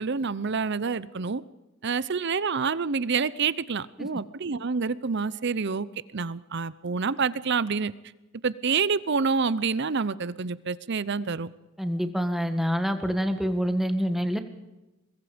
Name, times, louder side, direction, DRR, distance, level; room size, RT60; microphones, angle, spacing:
voice 1, 0.0-1.4 1.8-5.9 6.1-7.9 8.4-11.5, right 5 dB, 60° right, 18 dB, 0.7 m, -27 dB
voice 2, 11.8-14.4, equal, ahead, 7 dB, 1.7 m, -26 dB
23.0 x 22.0 x 5.2 m, 1.0 s
head